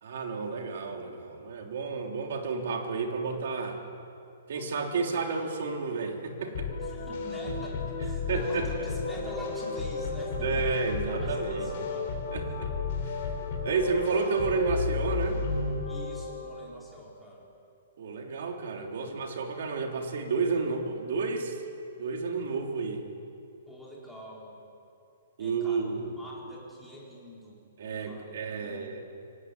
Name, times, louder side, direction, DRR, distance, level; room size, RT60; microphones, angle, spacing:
voice 1, 0.0-3.8 4.5-6.7 8.3-8.7 10.4-11.7 12.3-12.7 13.6-15.4 18.0-21.6 22.0-23.0 25.4-26.2 27.8-29.0, right 4 dB, 55° right, 3 dB, 3.3 m, -31 dB
sound 1, 6.5-16.6, left 4 dB, 40° left, 4.2 m, -32 dB
voice 2, 6.8-10.7 11.2-12.1 12.4-12.5 15.9-17.5 23.7-24.6 25.4-27.6 27.9-28.3 28.6-29.0, equal, ahead, -6 dB, 3.8 m, -45 dB
24.5 x 18.0 x 9.6 m, 2.6 s
hypercardioid pair, 175°, 0 cm